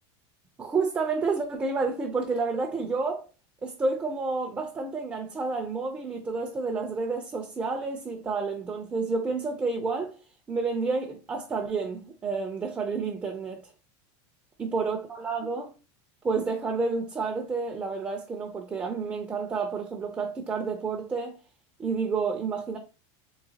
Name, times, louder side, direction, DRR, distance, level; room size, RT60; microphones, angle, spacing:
voice 1, 0.6-3.3 3.6-10.2 10.5-13.6 14.6-15.7 16.2-21.3 21.8-22.8, right 4 dB, 10° right, 0.4 m, -30 dB
3.9 x 2.7 x 2.7 m
supercardioid pair, 165°, 15 cm